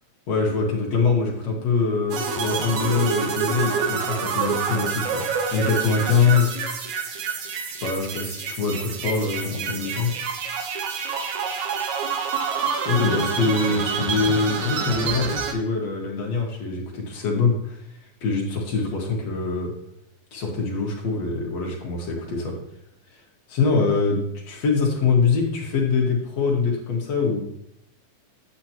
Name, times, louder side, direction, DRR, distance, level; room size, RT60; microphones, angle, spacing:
voice 1, 0.3-5.2 5.5-6.5 7.8-10.1 12.9-17.8 18.2-19.7 20.3-22.6 23.5-27.4, left 4 dB, 60° left, -1 dB, 2.7 m, -23 dB
sound 1, 2.1-15.5, right 6 dB, 70° right, 2.4 m, -27 dB
9.2 x 8.7 x 3.0 m, 0.78 s
omnidirectional pair, 3.5 m